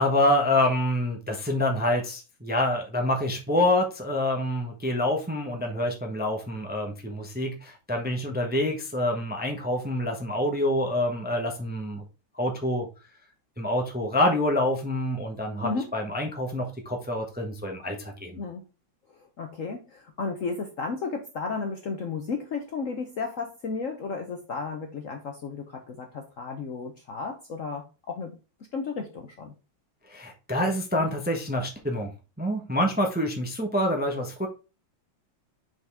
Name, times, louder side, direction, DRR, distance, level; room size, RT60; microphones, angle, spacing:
voice 1, 0.0-12.0 12.3-12.9 13.6-18.4 30.1-32.1 32.4-34.5, left 1 dB, 5° right, 2 dB, 0.7 m, -26 dB
voice 2, 19.1-28.3 28.7-29.5, left 4 dB, 55° left, 5 dB, 0.9 m, -33 dB
6.2 x 5.2 x 3.5 m, 0.31 s
omnidirectional pair, 2.1 m